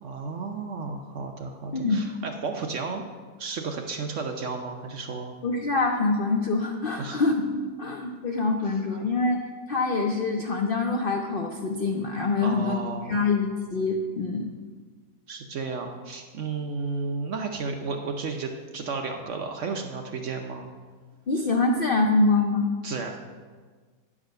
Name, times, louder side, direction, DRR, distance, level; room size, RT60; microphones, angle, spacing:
voice 1, 0.0-3.0 3.4-5.3 7.0-7.2 8.6-8.7 12.4-13.2 15.3-20.7 22.8-23.2, right 4 dB, 60° right, 4 dB, 0.8 m, -33 dB
voice 2, 1.7-2.0 5.4-12.7 13.1-14.5 21.3-22.7, left 3 dB, 85° left, 3 dB, 0.4 m, -25 dB
9.9 x 4.9 x 6.4 m, 1.5 s
omnidirectional pair, 1.8 m